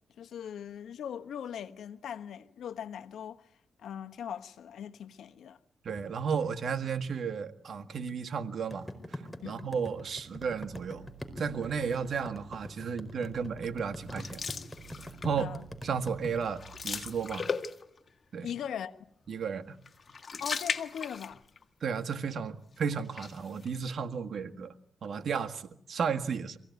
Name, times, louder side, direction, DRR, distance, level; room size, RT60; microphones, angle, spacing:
voice 1, 0.2-3.5 3.8-5.6 9.4-9.7 15.3-15.7 18.4-19.0 20.4-21.4, left 9 dB, 80° left, 1.2 m, -40 dB
voice 2, 5.8-11.1 11.4-14.4 15.2-15.5 15.8-17.5 18.3-18.5 19.3-19.7 21.8-24.7 25.0-26.6, right 6 dB, 65° right, 1.7 m, -33 dB
sound 1, 8.7-16.3, left 1 dB, 5° left, 4.6 m, -42 dB
sound 2, 10.3-17.4, right 9 dB, 45° right, 7.5 m, -54 dB
sound 3, 14.1-15.4 15.8-16.1 16.3-18.1 19.8-21.6 22.0-22.1 22.9-23.8, left 5 dB, 45° left, 1.7 m, -37 dB
25.5 x 16.5 x 9.5 m
cardioid pair, 80°, 0 cm